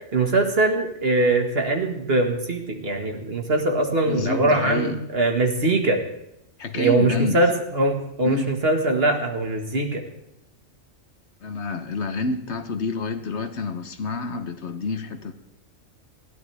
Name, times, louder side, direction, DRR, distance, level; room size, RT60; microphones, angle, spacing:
voice 1, 0.1-6.0 6.7-10.0, right 2 dB, 50° right, 4 dB, 1.9 m, -22 dB
voice 2, 4.0-5.0 6.6-7.4 8.2-8.5 11.4-15.3, left 3 dB, 60° left, 9 dB, 1.2 m, -28 dB
21.0 x 14.5 x 3.4 m, 0.80 s
omnidirectional pair, 1.4 m